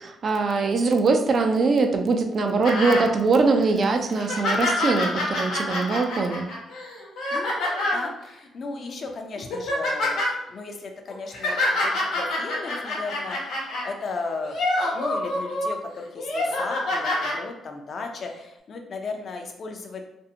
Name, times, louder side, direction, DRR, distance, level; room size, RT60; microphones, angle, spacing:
voice 1, 0.0-6.5, right 3 dB, 50° right, 5 dB, 0.3 m, -22 dB
sound 1, 2.6-3.1 3.6-3.7 4.1-8.1 8.8-9.0 9.4-10.3 11.1-13.9 14.4-15.7 16.2-17.4 18.3-18.4, left 1 dB, 80° left, 0.9 m, -26 dB
voice 2, 7.3-14.6 14.9-20.1, left 3 dB, 50° left, 3 dB, 0.4 m, -36 dB
2.6 x 2.0 x 2.7 m, 0.87 s
cardioid pair, 90°, 0 cm